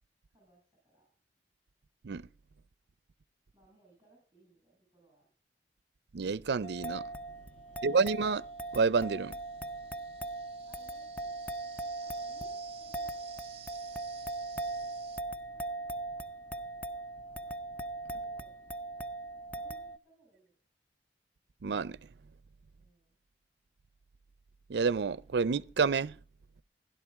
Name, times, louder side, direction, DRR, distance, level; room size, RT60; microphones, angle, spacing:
voice 1, 0.3-1.1 3.5-5.3 7.6-8.0 10.6-11.4 12.0-13.4 14.7-15.1 18.1-18.8 19.5-20.6 22.7-23.2, right 2 dB, 15° right, 7.0 m, -65 dB
voice 2, 6.1-7.1 7.8-8.5 8.7-9.4 21.6-22.0 24.7-26.2, right 5 dB, 70° right, 0.5 m, -29 dB
sound 1, 6.6-20.0, right 2 dB, 10° left, 0.6 m, -40 dB
sound 2, 7.7-15.2, right 9 dB, 35° right, 1.0 m, -55 dB
16.0 x 11.5 x 3.5 m
head